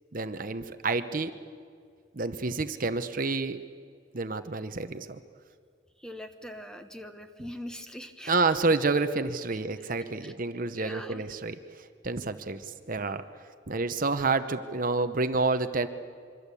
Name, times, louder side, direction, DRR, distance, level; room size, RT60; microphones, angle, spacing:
voice 1, 0.1-1.4 2.1-3.6 4.1-5.2 8.3-13.2 13.7-15.9, right 3 dB, 40° right, 10 dB, 0.9 m, -29 dB
voice 2, 6.0-8.4 9.7-9.8 10.2-10.3 10.7-11.2, equal, 5° left, 7 dB, 1.2 m, -42 dB
25.5 x 24.0 x 8.4 m, 2.1 s
head